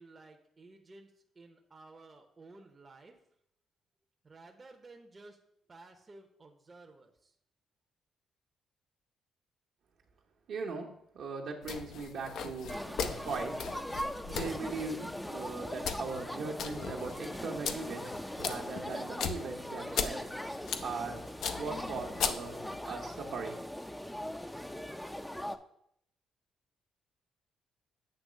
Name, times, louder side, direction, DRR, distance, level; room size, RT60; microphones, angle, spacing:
voice 1, 0.0-3.2 4.2-5.4 5.7-7.3, right 3 dB, 30° right, 3 dB, 0.8 m, -54 dB
voice 2, 10.5-10.9 11.1-13.5 14.3-20.2 20.8-21.2 21.6-23.6, right 4 dB, 70° right, 1 dB, 1.1 m, -39 dB
sound 1, 11.6-22.8, left 6 dB, 75° left, 0.5 m, -39 dB
sound 2, 12.7-25.6, equal, 5° left, 0.5 m, -40 dB
7.9 x 3.1 x 6.2 m, 0.73 s
cardioid pair, 90°, 0 cm